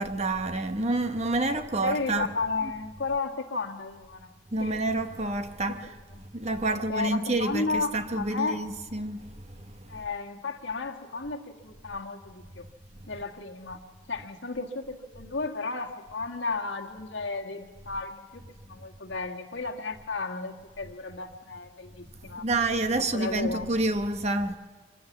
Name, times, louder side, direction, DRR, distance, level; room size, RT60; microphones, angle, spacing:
voice 1, 0.0-2.3 4.5-5.9 6.3-10.0 22.3-24.6, right 2 dB, 35° right, 1.0 m, -28 dB
voice 2, 1.4-4.3 4.6-4.7 5.7-5.8 6.6-8.6 9.9-12.7 13.1-13.8 14.1-18.4 18.7-22.5 23.1-23.7, left 3 dB, 65° left, 1.7 m, -33 dB
24.5 x 16.0 x 7.3 m
head